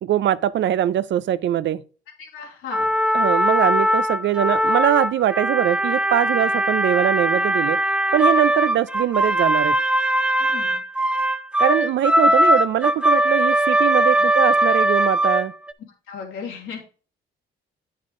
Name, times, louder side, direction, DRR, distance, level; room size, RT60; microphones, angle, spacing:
voice 1, 0.0-1.8 3.1-7.8 8.1-9.8 11.6-15.5, right 11 dB, 60° right, 0.5 m, -22 dB
voice 2, 2.2-2.9 10.4-10.8 14.1-14.2 16.1-16.8, left 6 dB, 80° left, 2.8 m, -35 dB
sound 1, 2.7-15.7, right 1 dB, 5° right, 0.5 m, -20 dB
8.8 x 5.5 x 3.7 m
cardioid pair, 80°, 21 cm